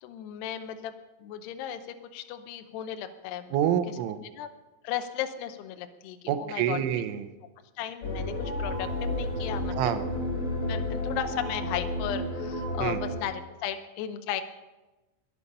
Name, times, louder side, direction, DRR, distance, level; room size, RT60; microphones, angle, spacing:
voice 1, 0.0-0.9 1.2-1.8 2.1-3.6 4.4-4.5 4.8-6.8 7.8-9.7 10.7-14.4, left 10 dB, 80° left, 8 dB, 2.5 m, -35 dB
voice 2, 3.5-4.2 6.3-7.3 9.7-10.1 12.8-13.0, right 10 dB, 80° right, 9 dB, 3.3 m, -27 dB
sound 1, 8.0-13.2, left 1 dB, 35° left, 3.8 m, -31 dB
22.0 x 8.5 x 5.4 m, 1.1 s
omnidirectional pair, 5.7 m